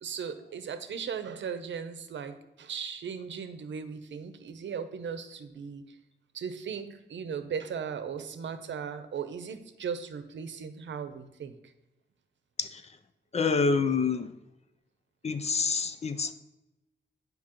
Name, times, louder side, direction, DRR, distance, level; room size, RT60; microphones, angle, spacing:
voice 1, 0.0-6.0 6.3-11.6, right 6 dB, 75° right, 10 dB, 0.7 m, -37 dB
voice 2, 13.3-14.3 15.2-16.3, left 5 dB, 35° left, 10 dB, 0.5 m, -27 dB
9.7 x 5.3 x 3.0 m, 0.97 s
wide cardioid pair, 145°, 19 cm